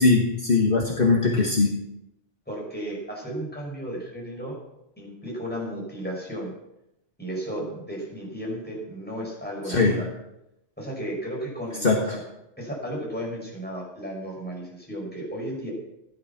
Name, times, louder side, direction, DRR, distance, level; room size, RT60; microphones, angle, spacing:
voice 1, 0.0-1.7 9.7-10.0 11.8-12.2, left 3 dB, 50° left, -1 dB, 1.9 m, -20 dB
voice 2, 2.5-4.6 5.0-6.5 7.2-10.1 10.8-12.2 12.6-15.7, right 1 dB, 10° left, -3 dB, 6.2 m, -34 dB
15.5 x 12.0 x 6.0 m, 0.86 s
omnidirectional pair, 1.2 m